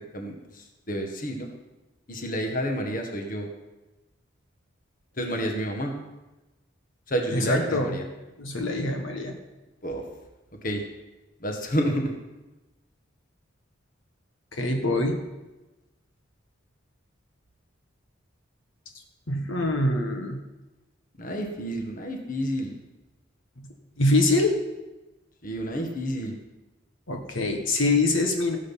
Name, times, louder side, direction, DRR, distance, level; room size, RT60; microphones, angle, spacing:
voice 1, 0.0-1.5 2.1-3.5 5.2-5.9 7.1-8.0 9.8-10.0 10.6-10.8 11.4-12.1 21.2-22.7 25.4-26.3, equal, 40° left, 3 dB, 1.7 m, -29 dB
voice 2, 7.3-8.0 8.4-9.3 14.5-15.2 19.3-20.4 24.0-24.5 27.1-28.6, left 2 dB, 70° left, 3 dB, 1.5 m, -24 dB
16.5 x 7.8 x 5.8 m, 1.1 s
head